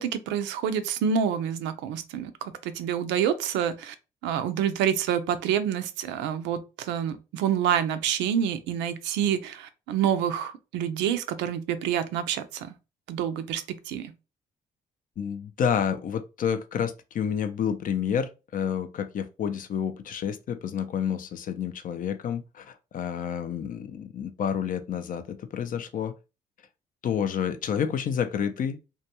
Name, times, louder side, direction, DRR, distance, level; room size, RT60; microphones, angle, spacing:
voice 1, 0.0-4.0 4.2-12.7 13.1-14.1, right 8 dB, 75° right, 0.4 m, -27 dB
voice 2, 15.2-26.1 27.0-28.8, left 8 dB, 45° left, 0.4 m, -29 dB
2.2 x 2.2 x 2.8 m
supercardioid pair, 60°, 19 cm